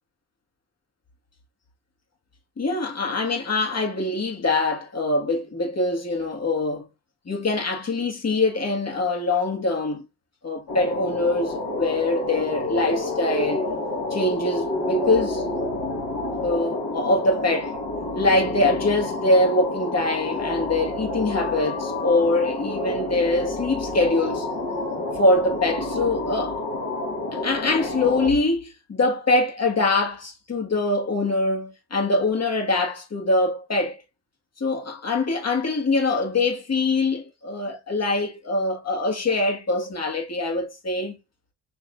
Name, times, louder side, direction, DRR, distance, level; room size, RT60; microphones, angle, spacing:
voice 1, 2.6-6.9 7.2-10.1 10.4-13.7 14.1-15.5 16.4-17.7 18.1-24.5 25.1-26.6 27.3-34.0 34.6-41.2, left 2 dB, 35° left, 1.7 m, -23 dB
sound 1, 10.7-28.3, left 2 dB, 50° left, 1.8 m, -29 dB
5.4 x 3.2 x 2.5 m
hypercardioid pair, 45°, 43 cm